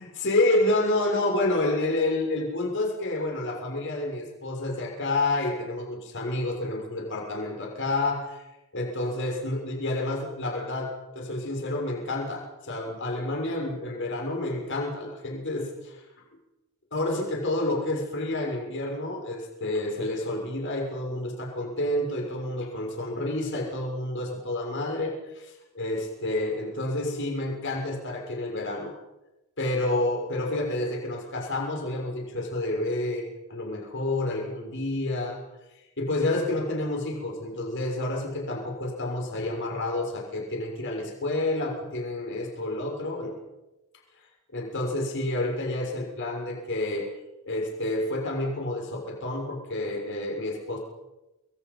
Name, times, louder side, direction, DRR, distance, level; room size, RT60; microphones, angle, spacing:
voice 1, 0.0-8.4 8.7-10.9 11.1-16.0 16.9-28.9 29.6-35.4 36.0-43.3 44.5-47.1 47.4-50.8, left 2 dB, 55° left, 0 dB, 6.6 m, -29 dB
29.0 x 23.0 x 5.6 m, 0.99 s
head